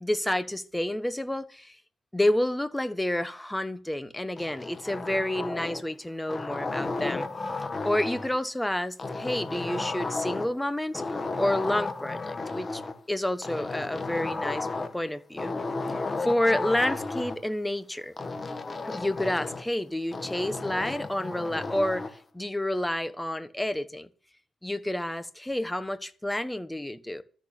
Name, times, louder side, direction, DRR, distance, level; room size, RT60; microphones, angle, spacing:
voice 1, 0.0-1.8 2.1-7.3 7.8-12.8 13.1-14.7 14.9-15.5 15.9-18.1 18.8-24.1 24.6-27.2, left 1 dB, 5° left, 1.2 m, -29 dB
sound 1, 4.4-5.9 6.3-8.4 9.0-10.6 10.9-12.9 13.4-15.0 15.4-17.4 18.2-19.7 20.1-22.2, left 3 dB, 30° left, 1.6 m, -33 dB
13.0 x 6.4 x 9.0 m
cardioid pair, 90°, 0 cm